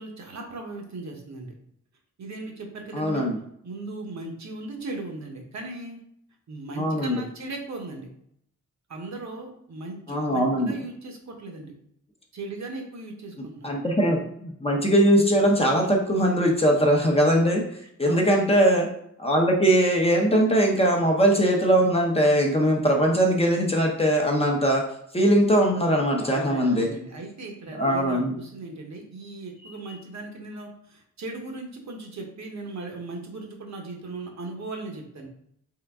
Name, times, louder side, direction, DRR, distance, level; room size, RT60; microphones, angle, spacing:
voice 1, 0.0-1.5 2.2-3.3 3.6-6.0 6.5-8.1 8.9-11.8 12.3-13.7 18.0-18.4 26.2-35.3, right 2 dB, 60° right, 2 dB, 0.9 m, -37 dB
voice 2, 2.9-3.4 6.8-7.2 10.1-10.7 13.6-17.6 18.0-18.9 19.2-24.8 25.1-26.9 27.7-28.3, equal, 20° left, 0 dB, 0.7 m, -21 dB
3.8 x 3.3 x 3.5 m, 0.70 s
wide cardioid pair, 150°, 32 cm